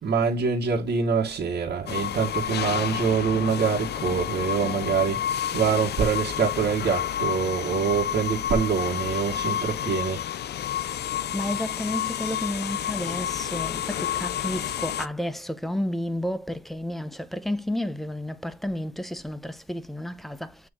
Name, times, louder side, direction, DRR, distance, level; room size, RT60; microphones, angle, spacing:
voice 1, 0.0-10.2, right 6 dB, 60° right, 1.7 m, -25 dB
sound 1, 1.9-15.1, left 10 dB, 55° left, 0.5 m, -30 dB
voice 2, 11.0-20.6, left 1 dB, ahead, 0.8 m, -31 dB
8.2 x 3.1 x 3.7 m
cardioid pair, 90°, 20 cm